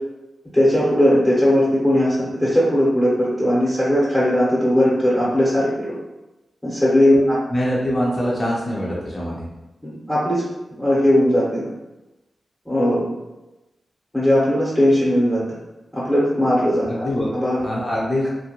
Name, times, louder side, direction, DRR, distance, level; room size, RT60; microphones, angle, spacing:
voice 1, 0.5-5.9 6.6-7.4 9.8-10.4 10.8-11.7 12.7-13.0 14.1-15.4 15.9-16.9 17.3-17.6, left 1 dB, 10° left, -8 dB, 0.8 m, -18 dB
voice 2, 7.5-9.5 16.9-17.3 17.6-18.3, equal, 40° left, -5 dB, 0.6 m, -23 dB
2.4 x 2.1 x 2.9 m, 1.0 s
cardioid pair, 65°, 0 cm